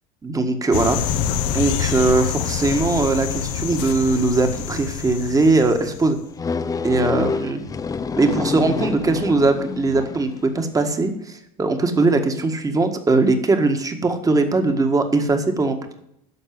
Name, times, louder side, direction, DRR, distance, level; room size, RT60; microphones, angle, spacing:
voice 1, 0.2-1.2 1.5-6.2 6.8-7.6 8.1-16.0, right 3 dB, 20° right, 6 dB, 1.7 m, -20 dB
sound 1, 0.7-6.1, left 8 dB, 70° left, 1.2 m, -26 dB
sound 2, 6.4-10.4, left 5 dB, 20° left, 0.6 m, -27 dB
11.0 x 6.6 x 7.7 m, 0.77 s
supercardioid pair, 110°, 18 cm